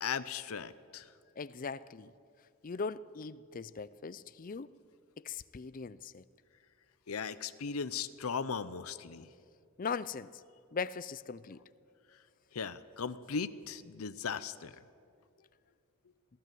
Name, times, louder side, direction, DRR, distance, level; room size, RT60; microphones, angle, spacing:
voice 1, 0.0-1.0 7.1-9.3 12.5-14.7, left 6 dB, 80° left, 0.7 m, -37 dB
voice 2, 1.4-2.1 2.6-4.7 5.2-6.2 9.8-10.3 10.7-11.6, left 5 dB, 40° left, 0.4 m, -39 dB
22.5 x 15.0 x 7.7 m
head